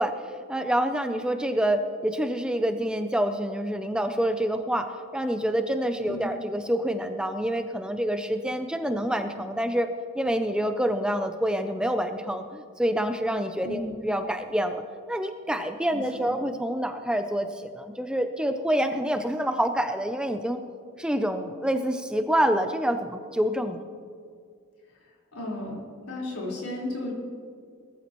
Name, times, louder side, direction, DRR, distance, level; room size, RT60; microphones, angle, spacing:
voice 1, 0.0-9.9 10.1-14.8 15.1-20.6 21.0-23.8, right 1 dB, 5° right, 7 dB, 0.4 m, -27 dB
voice 2, 13.6-14.0 15.9-16.3 25.3-25.8 26.1-27.1, left 1 dB, 90° left, -5 dB, 4.3 m, -34 dB
19.5 x 13.5 x 3.1 m, 2.1 s
head